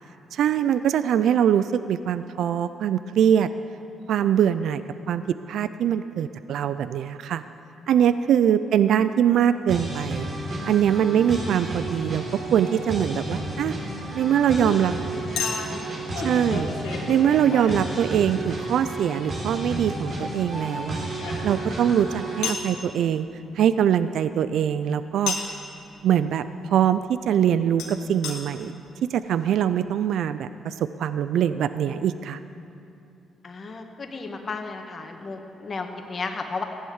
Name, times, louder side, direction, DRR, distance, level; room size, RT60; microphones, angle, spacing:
voice 1, 0.3-3.5 4.1-4.8 5.1-5.2 5.5-7.4 7.9-10.3 10.7-13.7 14.1-14.9 16.2-16.7 17.1-21.1 21.4-23.3 23.6-25.3 26.0-26.4 26.7-28.7 29.1-32.4, right 9 dB, 75° right, 13 dB, 0.4 m, -22 dB
sound 1, 9.7-22.5, right 2 dB, 55° right, 3.8 m, -32 dB
Chink clink, 12.5-12.7 15.4-18.5 20.1-21.8 22.4-22.7 25.3-25.6 27.8-27.9 28.2-28.4 29.0-29.1 29.3-29.4, left 5 dB, 85° left, 2.2 m, -33 dB
voice 2, 15.1-15.8 16.2-16.3 33.4-36.6, left 4 dB, 45° left, 3 dB, 1.9 m, -34 dB
15.5 x 11.0 x 7.2 m, 2.7 s
supercardioid pair, 55°, 0 cm